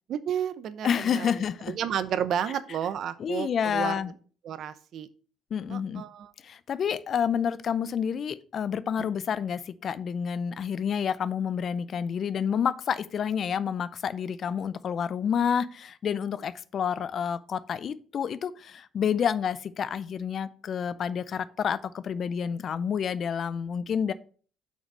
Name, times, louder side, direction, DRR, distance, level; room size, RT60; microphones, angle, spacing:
voice 1, 0.1-1.3 1.7-3.9 4.4-5.1 5.7-6.3 9.0-9.1, right 9 dB, 60° right, 14 dB, 0.7 m, -31 dB
voice 2, 0.8-1.8 3.2-4.1 5.5-6.0 6.4-24.1, left 7 dB, 50° left, 16 dB, 0.5 m, -29 dB
6.0 x 4.1 x 6.1 m, 0.43 s
supercardioid pair, 80°, 0 cm